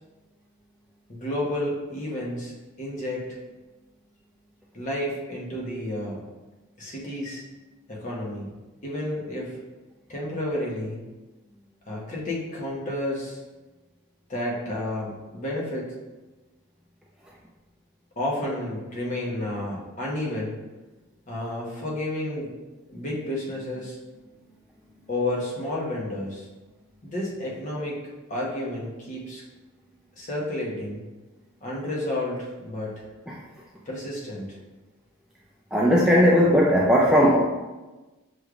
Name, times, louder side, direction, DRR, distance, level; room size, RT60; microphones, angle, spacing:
voice 1, 1.1-3.4 4.7-6.2 6.8-7.4 7.9-8.5 8.8-9.6 10.1-11.0 11.9-13.4 14.3-15.9 18.2-20.6 21.3-22.5 22.9-24.0 25.1-26.5 27.0-28.0 28.3-29.4 30.2-31.0 31.6-33.1 33.9-34.6, left 1 dB, 35° left, -4 dB, 0.9 m, -31 dB
voice 2, 35.7-37.4, equal, 5° right, -6 dB, 0.3 m, -18 dB
6.2 x 3.2 x 2.4 m, 1.2 s
head